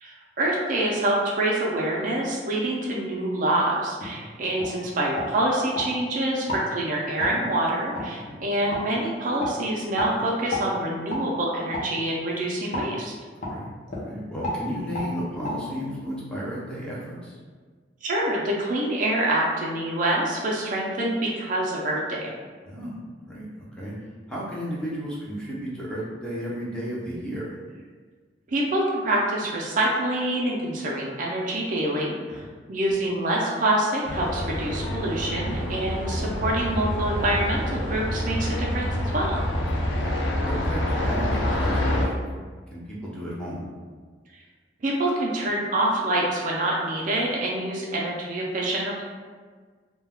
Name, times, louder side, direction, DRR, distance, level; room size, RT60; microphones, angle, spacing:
voice 1, 0.0-13.1 18.0-22.3 28.5-32.4 32.7-39.4 44.8-49.0, right 1 dB, 45° right, -3 dB, 0.4 m, -26 dB
sound 1, 4.0-4.1 4.6-4.7 5.1-5.9 6.4-6.6 7.2-7.3 7.9-8.1 8.7-8.8 9.4-9.5 10.0-10.1 10.5-10.7 11.1-11.2 11.7-11.9 12.7-12.9 13.4-13.6 13.9-14.1 14.4-14.6 14.9-15.1 15.4-15.5, left 1 dB, 45° left, 0.6 m, -30 dB
voice 2, 13.4-17.4 22.6-22.9 23.3-23.9 24.3-27.6 32.3-32.5 35.6-35.8 39.8-42.2 42.7-43.6, equal, 5° left, -7 dB, 0.5 m, -34 dB
sound 2, 34.1-42.1, left 1 dB, 90° left, 0.5 m, -27 dB
2.2 x 2.2 x 3.4 m, 1.5 s
head